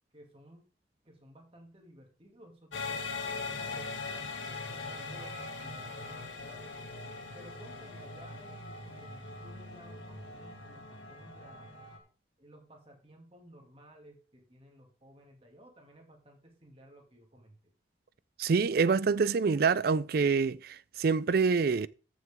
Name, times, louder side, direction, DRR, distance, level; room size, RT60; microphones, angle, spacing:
voice 1, 0.1-0.7 1.0-4.3 4.7-6.6 7.3-11.8 12.4-17.7, equal, 30° right, 2.4 m, -56 dB
sound 1, 2.7-12.0, left 3 dB, 85° left, 2.3 m, -41 dB
voice 2, 18.4-21.9, right 5 dB, 50° right, 0.4 m, -26 dB
14.0 x 6.2 x 3.6 m
head